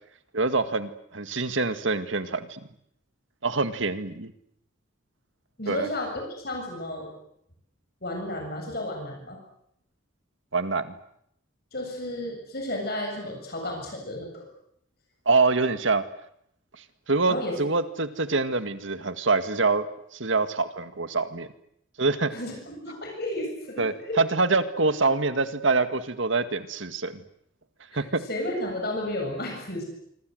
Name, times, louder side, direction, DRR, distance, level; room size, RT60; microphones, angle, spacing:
voice 1, 0.3-2.7 3.4-4.3 5.7-5.9 10.5-10.9 15.3-16.0 17.1-19.9 20.1-21.5 22.0-22.3 23.8-27.2 27.9-28.2, right 3 dB, 75° right, 10 dB, 2.0 m, -25 dB
voice 2, 5.6-7.1 8.0-9.4 11.7-14.5 17.3-17.6 22.3-24.2 27.9-29.8, left 1 dB, 50° left, 2 dB, 7.6 m, -33 dB
26.0 x 26.0 x 8.0 m, 0.72 s
head